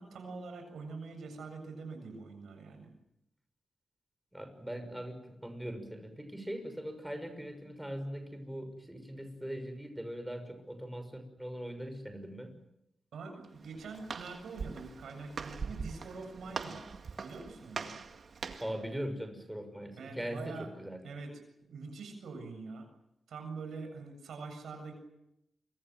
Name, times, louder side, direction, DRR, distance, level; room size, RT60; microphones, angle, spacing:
voice 1, 0.0-2.9 13.1-16.9 17.2-18.0 20.0-20.7 21.0-22.9 23.3-24.9, right 4 dB, 85° right, 6 dB, 7.4 m, -44 dB
voice 2, 4.3-12.5 18.6-21.0, equal, 5° right, 7 dB, 6.0 m, -41 dB
Walk footsteps, 13.4-18.8, right 5 dB, 60° right, 2.1 m, -42 dB
28.0 x 24.5 x 7.6 m, 0.85 s
cardioid pair, 75°, 0 cm